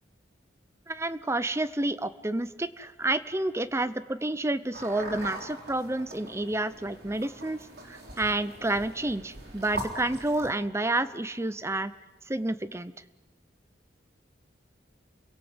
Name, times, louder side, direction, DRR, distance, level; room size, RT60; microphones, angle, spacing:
voice 1, 0.9-7.6 7.9-11.9 12.3-12.9, right 2 dB, 15° right, 13 dB, 0.7 m, -29 dB
sound 1, 4.7-10.5, right 1 dB, 60° right, 4.0 m, -41 dB
28.5 x 17.5 x 8.0 m, 1.3 s
head